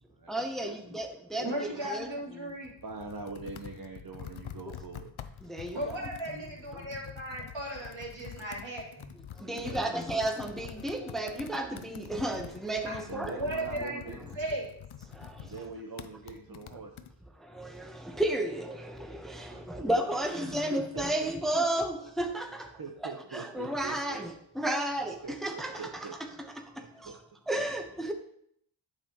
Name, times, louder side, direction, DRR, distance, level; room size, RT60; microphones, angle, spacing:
voice 1, 0.3-2.1 5.5-6.0 9.5-13.4 17.6-22.7 23.0-25.1 25.4-26.1 27.5-28.1, right 1 dB, ahead, 0.9 m, -32 dB
voice 2, 1.0-2.7 5.7-9.1 12.8-14.7 19.8-19.9, right 1 dB, 70° right, 3.1 m, -37 dB
Computer keyboard, 2.5-17.1, left 9 dB, 80° left, 0.6 m, -46 dB
voice 3, 2.8-5.1 9.4-9.9 13.1-14.4 15.4-16.9 19.5-21.3 22.8-24.2 25.2-26.2 26.8-27.2, right 4 dB, 45° right, 0.9 m, -43 dB
8.7 x 6.6 x 2.9 m
cardioid pair, 40°, 47 cm